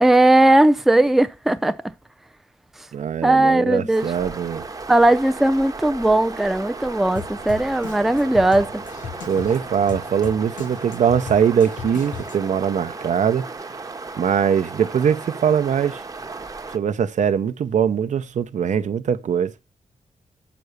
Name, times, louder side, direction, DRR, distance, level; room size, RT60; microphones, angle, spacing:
voice 1, 0.0-1.8 3.2-4.1 4.9-8.8, right 1 dB, ahead, 0.5 m, -17 dB
voice 2, 2.9-4.6 9.3-13.5 14.2-16.0 16.7-19.5, right 8 dB, 70° right, 0.7 m, -21 dB
sound 1, 4.0-16.8, right 3 dB, 25° right, 0.8 m, -35 dB
Drum kit, 7.1-12.6, left 7 dB, 80° left, 0.9 m, -37 dB
6.8 x 6.1 x 6.5 m
wide cardioid pair, 115°, 13 cm